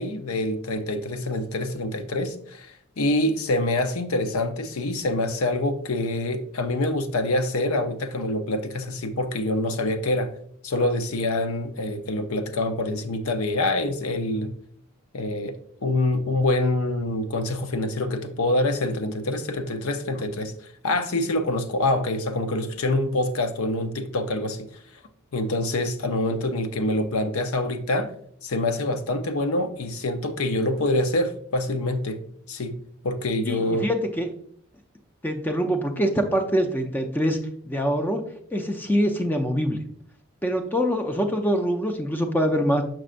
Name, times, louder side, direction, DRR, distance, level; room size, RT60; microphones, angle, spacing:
voice 1, 0.0-10.3 10.6-14.5 15.1-20.5 20.8-24.7 25.3-28.1 28.4-32.2 32.5-32.8 33.0-33.9, left 2 dB, 90° left, 0.7 m, -26 dB
voice 2, 33.5-34.3 35.2-37.4 37.6-38.2 38.5-39.8 40.4-42.8, equal, 10° left, 0.5 m, -24 dB
6.3 x 6.2 x 2.5 m
head